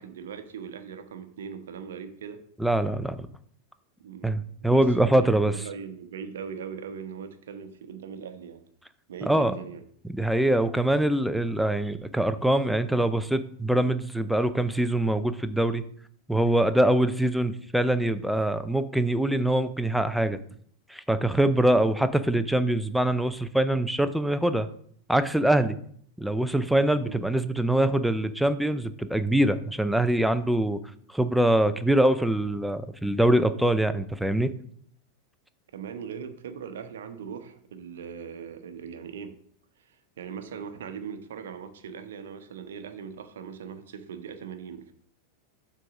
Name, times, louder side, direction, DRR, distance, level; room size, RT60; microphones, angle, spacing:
voice 1, 0.0-2.4 4.0-8.6 9.1-9.8 20.5-20.6 27.1-27.2 35.7-39.4 39.9-44.9, right 7 dB, 60° right, 9 dB, 0.9 m, -40 dB
voice 2, 2.6-3.2 4.2-5.7 9.3-9.5 10.1-15.8 16.3-20.4 20.9-24.7 25.1-25.8 26.2-30.8 31.1-34.5, right 1 dB, ahead, 11 dB, 0.5 m, -24 dB
7.5 x 3.8 x 6.1 m, 0.62 s
figure-of-eight pair, 90°, 0 cm